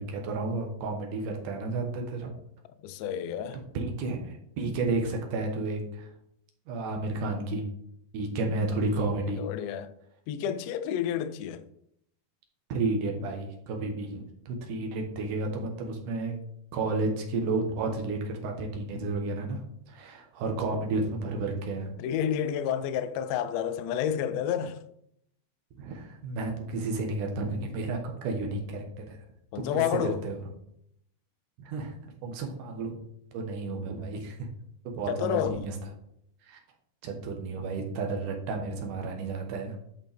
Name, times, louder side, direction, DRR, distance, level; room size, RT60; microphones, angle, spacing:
voice 1, 0.0-2.3 3.7-6.1 6.7-7.7 8.1-9.4 12.7-16.3 16.7-19.6 19.9-21.9 25.8-29.2 29.6-30.4 31.6-31.9 32.2-33.0 33.3-34.5 34.8-35.8 36.5-36.6 37.0-39.8, right 3 dB, 65° right, 2.5 m, -32 dB
voice 2, 2.8-3.6 8.3-8.5 8.9-9.1 9.4-9.9 10.3-11.7 22.0-24.8 29.5-30.2 35.1-35.6, left 9 dB, 80° left, 1.9 m, -30 dB
11.0 x 5.1 x 3.4 m
omnidirectional pair, 4.3 m